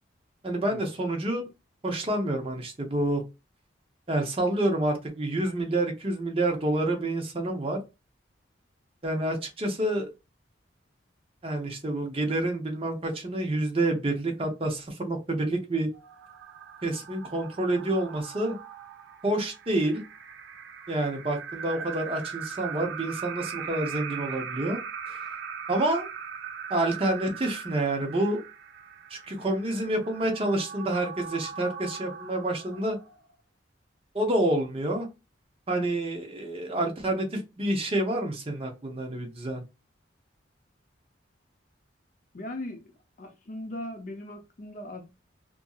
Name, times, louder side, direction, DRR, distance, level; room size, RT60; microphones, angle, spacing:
voice 1, 0.4-1.4 1.8-3.2 4.1-7.8 9.0-10.1 11.4-15.9 16.8-18.6 19.2-20.0 20.9-24.8 25.1-25.3 25.7-26.1 26.7-28.4 29.1-33.0 34.1-35.1 35.7-39.6, right 1 dB, 30° right, 0.7 m, -28 dB
sound 1, 15.9-33.3, right 7 dB, 75° right, 0.4 m, -40 dB
voice 2, 42.3-42.8 43.2-45.0, left 1 dB, 40° left, 0.5 m, -38 dB
2.7 x 2.6 x 2.3 m
head